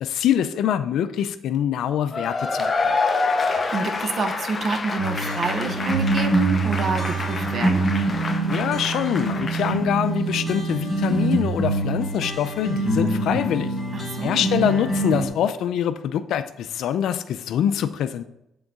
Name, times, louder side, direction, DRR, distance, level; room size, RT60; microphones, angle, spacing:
voice 1, 0.0-3.0 8.5-13.7 14.2-18.2, left 9 dB, 80° left, 12 dB, 0.5 m, -24 dB
Cheering / Applause / Crowd, 2.1-9.8, left 4 dB, 35° left, 0.7 m, -27 dB
voice 2, 3.4-7.8 13.9-14.5, right 4 dB, 50° right, 7 dB, 0.9 m, -28 dB
sound 1, 5.0-15.3, right 2 dB, 15° left, 1.7 m, -25 dB
7.7 x 3.9 x 4.7 m, 0.82 s
cardioid pair, 90°, 0 cm